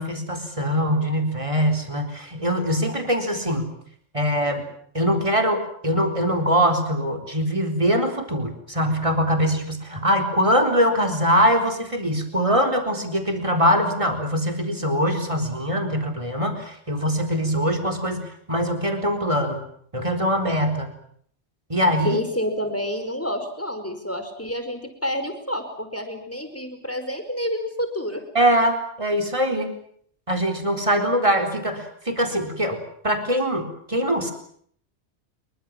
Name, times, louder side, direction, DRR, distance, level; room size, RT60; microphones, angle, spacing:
voice 1, 0.0-3.7 4.1-4.6 4.9-19.6 19.9-20.9 21.7-22.2 28.3-29.7 30.3-34.3, equal, 30° right, 5 dB, 4.2 m, -22 dB
voice 2, 22.0-28.2, equal, 10° left, 7 dB, 5.0 m, -29 dB
26.5 x 24.0 x 7.5 m, 0.64 s
omnidirectional pair, 1.1 m